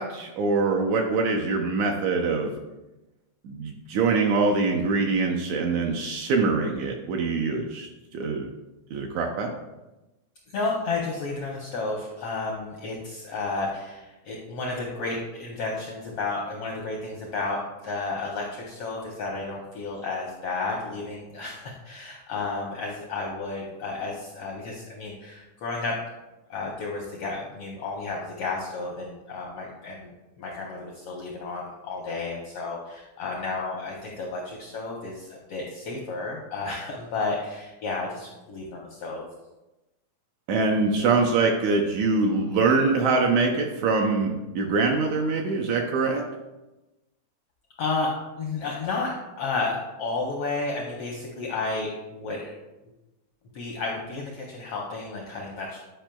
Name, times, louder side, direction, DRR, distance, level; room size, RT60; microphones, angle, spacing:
voice 1, 0.0-2.5 3.4-8.5 8.9-9.5 40.5-46.2, right 4 dB, 80° right, 1 dB, 1.7 m, -24 dB
voice 2, 10.5-26.0 26.5-39.2 47.8-48.1 48.4-52.5 53.5-55.8, left 3 dB, 75° left, -2 dB, 1.3 m, -32 dB
8.9 x 5.0 x 2.2 m, 1.0 s
omnidirectional pair, 3.6 m